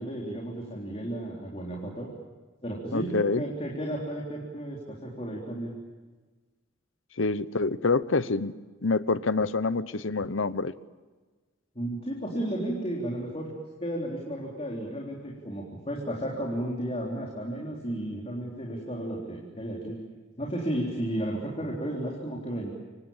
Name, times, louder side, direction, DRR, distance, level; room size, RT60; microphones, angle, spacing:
voice 1, 0.0-2.1 2.6-5.7 11.8-13.5 13.8-20.0 20.4-22.7, right 1 dB, 30° left, -2 dB, 3.8 m, -33 dB
voice 2, 2.9-3.4 7.2-8.5 8.8-10.7, left 3 dB, 70° left, 15 dB, 0.9 m, -26 dB
29.0 x 25.0 x 7.3 m, 1.3 s
head